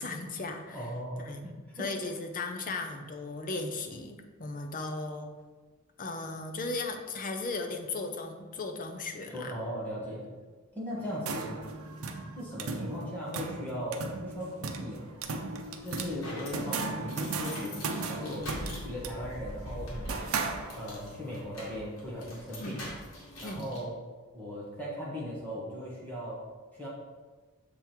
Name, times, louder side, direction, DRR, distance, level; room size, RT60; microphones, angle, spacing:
voice 1, 0.0-0.9 1.2-1.4 1.8-5.3 6.0-9.6 22.6-22.8 23.4-23.7, left 3 dB, 40° left, 5 dB, 0.6 m, -36 dB
voice 2, 0.7-1.9 9.3-10.2 10.7-11.6 12.4-15.1 15.8-18.5 18.8-20.2 20.7-22.9 23.4-24.0 24.3-26.4 26.8-26.9, equal, 10° left, -7 dB, 1.4 m, -38 dB
sound 1, 11.0-21.1, right 3 dB, 85° right, 0.6 m, -37 dB
sound 2, 15.4-23.8, left 1 dB, 80° left, 1.8 m, -44 dB
sound 3, 17.8-23.3, left 1 dB, 25° right, 1.5 m, -57 dB
6.9 x 3.6 x 4.5 m, 1.3 s
head